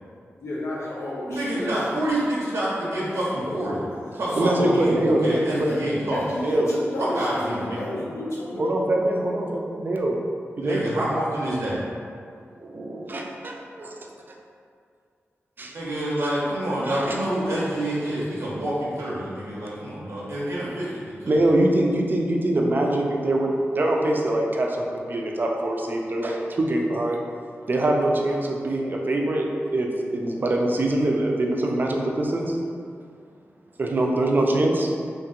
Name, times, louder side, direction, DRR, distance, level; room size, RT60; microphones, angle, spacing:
voice 1, 0.4-1.7 3.4-3.6 4.4-4.8 5.6-5.8 6.1-8.7, left 1 dB, 85° left, -5 dB, 0.6 m, -31 dB
voice 2, 1.3-3.9 4.1-6.2 7.0-7.8 10.6-11.8 15.7-21.4, right 1 dB, 90° right, -7 dB, 0.7 m, -27 dB
voice 3, 4.4-5.7 6.4-6.7 8.6-10.2 10.6-10.8 12.6-14.0 15.6-15.7 16.2-16.3 16.8-17.2 21.3-27.2 27.7-32.6 33.8-34.9, right 1 dB, 45° right, 0 dB, 0.4 m, -23 dB
2.9 x 2.8 x 2.4 m, 2.3 s
wide cardioid pair, 95°, 5 cm